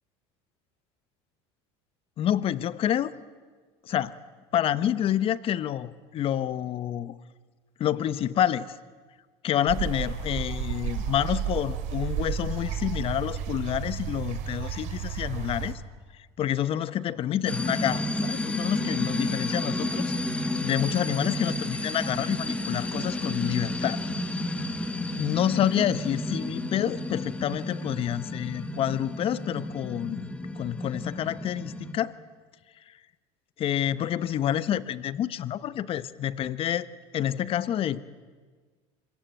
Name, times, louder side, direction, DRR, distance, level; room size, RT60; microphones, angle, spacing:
voice 1, 2.2-3.1 3.8-4.2 4.5-7.1 7.8-8.8 9.4-15.7 16.4-20.1 20.6-24.0 25.2-32.1 33.6-36.9 37.1-38.0, left 10 dB, 45° left, 16 dB, 1.1 m, -28 dB
sound 1, 9.7-15.7, right 8 dB, 65° right, 3.4 m, -32 dB
sound 2, 17.5-31.9, left 1 dB, 10° left, 2.0 m, -31 dB
26.0 x 23.0 x 9.0 m, 1.5 s
supercardioid pair, 115°, 13 cm